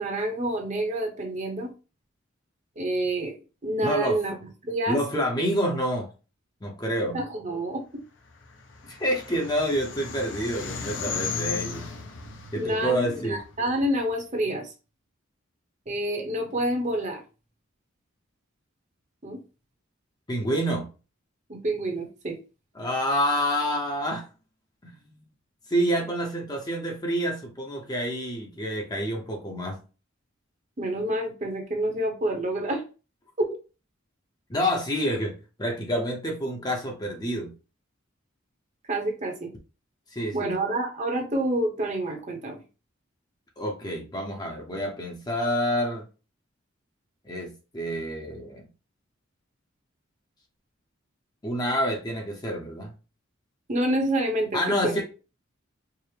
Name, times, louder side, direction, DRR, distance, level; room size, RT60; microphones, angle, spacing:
voice 1, 0.0-1.7 2.8-3.4 3.6-4.4 4.6-5.0 7.1-7.8 12.5-14.7 15.9-17.2 19.2-19.4 21.5-22.4 30.8-32.8 33.4-33.5 38.9-39.5 40.3-42.6 53.7-55.0, right 1 dB, 35° right, 2 dB, 0.9 m, -28 dB
voice 2, 3.8-4.2 4.9-6.1 6.6-7.2 8.8-11.9 12.5-13.4 20.3-20.9 22.8-24.3 24.8-24.9 25.7-29.8 34.5-35.3 35.6-37.5 40.1-40.6 43.6-46.0 47.2-48.7 51.4-52.9 54.5-55.0, equal, 20° left, 1 dB, 0.7 m, -28 dB
sound 1, 8.4-13.8, left 5 dB, 65° left, 0.7 m, -35 dB
4.6 x 2.0 x 3.3 m, 0.33 s
head